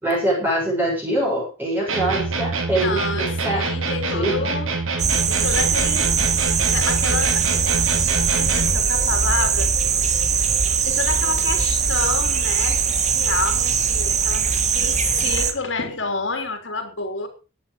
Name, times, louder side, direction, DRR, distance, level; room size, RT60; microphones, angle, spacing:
voice 1, 0.0-3.7 4.1-4.5, right 1 dB, 10° right, -5 dB, 7.2 m, -23 dB
sound 1, 1.9-8.9, right 3 dB, 80° right, 4.5 m, -25 dB
voice 2, 2.8-4.7 5.3-6.1 6.7-7.7 8.3-9.7 10.8-14.5 14.7-17.3, left 4 dB, 65° left, 5 dB, 3.4 m, -28 dB
sound 2, 5.0-15.5, right 6 dB, 35° right, 1.9 m, -21 dB
17.0 x 10.0 x 5.0 m, 0.33 s
head